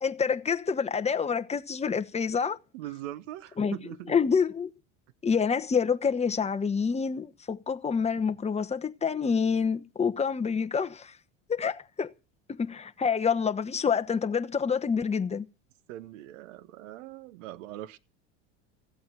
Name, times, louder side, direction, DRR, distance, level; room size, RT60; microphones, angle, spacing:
voice 1, 0.0-2.6 3.6-3.8 4.1-4.7 5.2-11.1 11.5-12.1 12.5-15.5, left 6 dB, 15° left, 1.1 m, -27 dB
voice 2, 2.7-4.1 15.9-18.0, right 14 dB, 80° right, 1.2 m, -41 dB
15.0 x 8.2 x 7.5 m
supercardioid pair, 95°, 37 cm